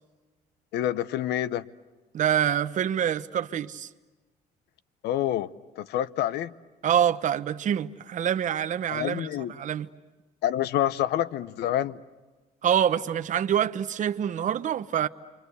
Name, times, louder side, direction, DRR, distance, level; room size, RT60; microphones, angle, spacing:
voice 1, 0.7-1.7 5.0-5.5 5.8-6.5 8.9-9.5 10.4-12.0, left 12 dB, 75° left, 0.8 m, -27 dB
voice 2, 2.1-3.9 6.8-9.9 12.6-15.1, right 9 dB, 50° right, 0.9 m, -26 dB
29.5 x 24.5 x 8.2 m
cardioid pair, 110°, 17 cm